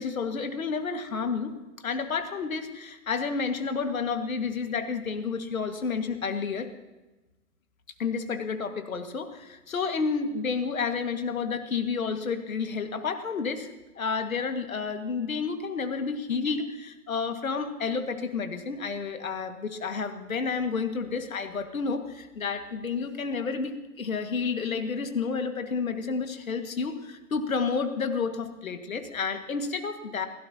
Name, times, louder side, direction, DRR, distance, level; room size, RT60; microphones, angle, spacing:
voice 1, 0.0-1.5 1.8-6.7 8.0-30.3, left 5 dB, 55° left, 7 dB, 2.0 m, -30 dB
27.0 x 17.0 x 2.9 m, 1.1 s
figure-of-eight pair, 130°, 48 cm